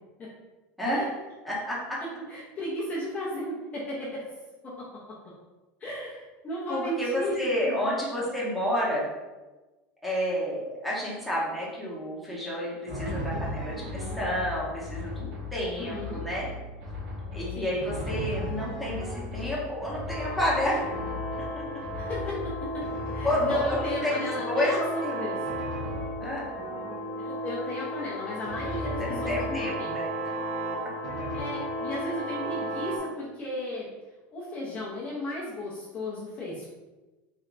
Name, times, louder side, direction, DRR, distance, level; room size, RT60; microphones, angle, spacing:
voice 1, 0.8-1.1 1.4-2.0 6.7-9.1 10.0-16.5 17.3-20.8 21.4-21.6 23.2-25.3 26.2-26.4 29.0-30.1, equal, ahead, -7 dB, 1.0 m, -30 dB
voice 2, 2.3-4.2 4.6-4.9 5.8-7.3 15.8-16.2 17.6-17.7 22.0-22.4 22.7-22.8 23.1-25.4 27.2-29.9 31.3-33.9 34.3-36.6, left 1 dB, 25° left, -6 dB, 0.7 m, -35 dB
Drum, 12.9-24.2 25.4-27.4 28.5-30.0 31.0-31.4, left 1 dB, 75° right, 1.2 m, -37 dB
sound 1, 20.1-33.0, equal, 35° right, 0.6 m, -34 dB
3.3 x 2.8 x 2.5 m, 1.2 s
supercardioid pair, 135°, 6 cm